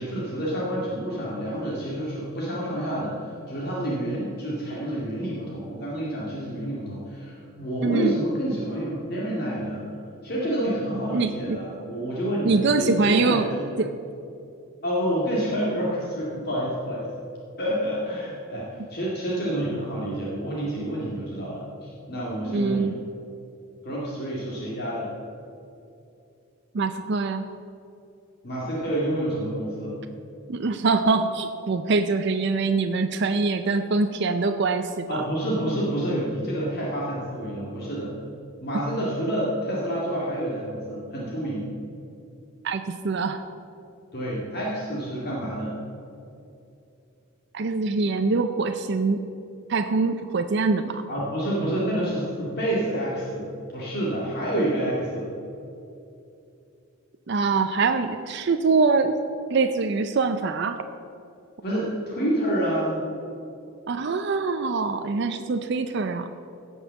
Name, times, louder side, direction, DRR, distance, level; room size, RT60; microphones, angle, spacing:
voice 1, 0.0-9.9 10.2-13.6 14.8-17.1 17.6-22.9 23.8-25.1 28.4-30.0 35.1-38.1 38.6-41.7 44.1-45.8 51.1-55.3 61.6-63.1, right 1 dB, 50° left, -5 dB, 2.1 m, -28 dB
voice 2, 7.8-8.2 11.1-11.6 12.4-13.5 13.8-13.9 22.5-22.9 26.7-27.5 30.5-35.2 42.6-43.4 47.5-49.2 49.7-51.0 57.3-59.2 59.5-60.8 63.9-66.3, right 4 dB, 55° right, 7 dB, 0.5 m, -24 dB
16.0 x 5.5 x 7.0 m, 2.7 s
head